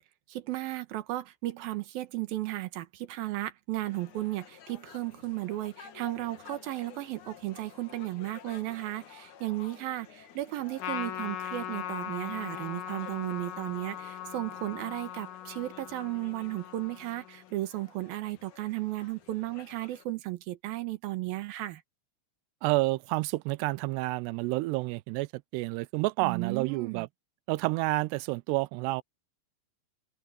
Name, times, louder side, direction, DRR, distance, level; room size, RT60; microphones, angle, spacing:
voice 1, 0.3-21.8 26.2-27.1, right 16 dB, 65° right, 2.8 m, -35 dB
sound 1, 3.8-20.0, left 8 dB, 55° left, 2.7 m, -53 dB
Trumpet, 10.8-17.5, left 11 dB, 90° left, 4.3 m, -39 dB
voice 2, 22.6-27.1 27.5-29.0, right 22 dB, 80° right, 2.6 m, -29 dB
omnidirectional pair, 5.0 m